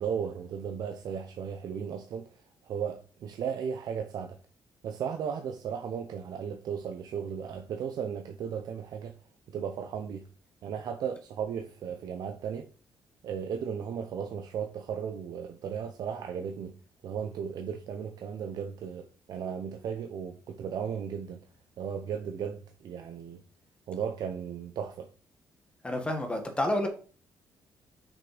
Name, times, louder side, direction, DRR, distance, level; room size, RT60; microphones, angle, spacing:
voice 1, 0.0-4.4 4.8-9.1 9.5-10.3 10.6-12.7 13.2-16.7 17.0-21.5 21.8-23.4 23.9-25.1, right 7 dB, 70° right, 0.8 m, -35 dB
voice 2, 25.8-26.9, left 1 dB, 15° left, 1.9 m, -29 dB
6.5 x 6.1 x 5.0 m
cardioid pair, 135°, 7 cm